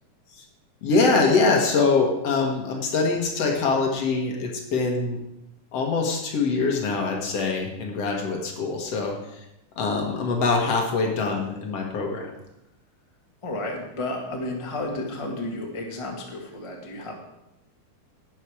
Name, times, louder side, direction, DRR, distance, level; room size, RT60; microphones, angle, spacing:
voice 1, 0.8-5.2 5.7-9.4 9.8-12.3, left 4 dB, 55° left, 2 dB, 2.2 m, -24 dB
voice 2, 13.4-17.2, left 2 dB, 25° left, 0 dB, 0.6 m, -32 dB
12.0 x 8.7 x 4.8 m, 0.88 s
omnidirectional pair, 3.8 m